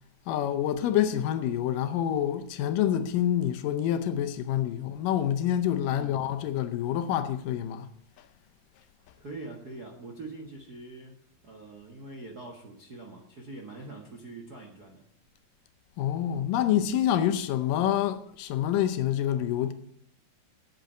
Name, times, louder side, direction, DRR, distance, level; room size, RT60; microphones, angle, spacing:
voice 1, 0.3-7.9 16.0-19.7, left 11 dB, 75° left, 2.3 m, -27 dB
voice 2, 5.8-6.2 9.2-11.1 11.4-15.0, right 2 dB, 50° right, 1.1 m, -43 dB
8.9 x 8.0 x 9.0 m
omnidirectional pair, 4.1 m